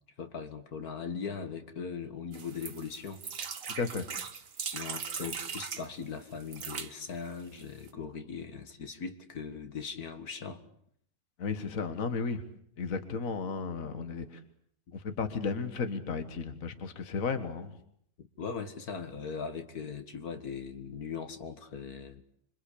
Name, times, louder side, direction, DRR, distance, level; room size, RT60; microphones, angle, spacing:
voice 1, 0.2-3.2 4.7-10.6 18.2-22.2, left 5 dB, 75° left, 9 dB, 2.3 m, -39 dB
sound 1, 2.3-5.9 6.4-6.9 7.6-7.7 7.9-8.0, right 6 dB, 60° right, 1.8 m, -39 dB
voice 2, 3.8-4.1 11.4-12.4 12.8-14.4 14.9-17.7, left 4 dB, 60° left, 9 dB, 1.9 m, -34 dB
27.0 x 24.0 x 8.5 m, 0.67 s
omnidirectional pair, 1.6 m